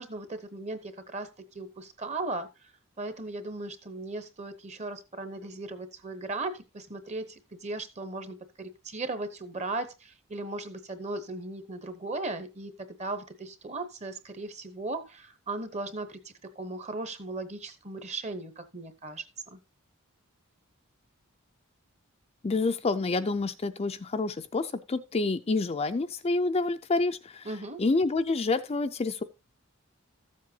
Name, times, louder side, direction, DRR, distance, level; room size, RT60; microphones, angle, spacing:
voice 1, 0.0-2.5 3.0-19.3 19.5-19.6 27.4-27.8, right 2 dB, 30° right, 0.9 m, -37 dB
voice 2, 22.4-27.5 27.8-29.2, left 3 dB, 30° left, 0.4 m, -28 dB
14.0 x 7.5 x 2.8 m
head